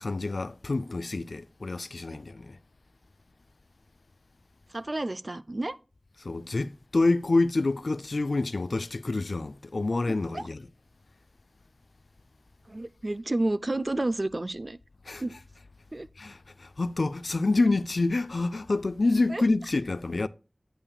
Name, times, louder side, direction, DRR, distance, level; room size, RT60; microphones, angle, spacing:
voice 1, 0.0-2.6 6.2-10.7 15.1-15.2 16.2-20.3, left 3 dB, 85° left, 0.3 m, -27 dB
voice 2, 4.7-5.8 10.1-10.5 12.7-14.8 15.2-15.4 15.9-16.1 19.3-19.4, right 2 dB, 50° right, 0.4 m, -30 dB
8.7 x 8.3 x 2.3 m
wide cardioid pair, 45°, 0 cm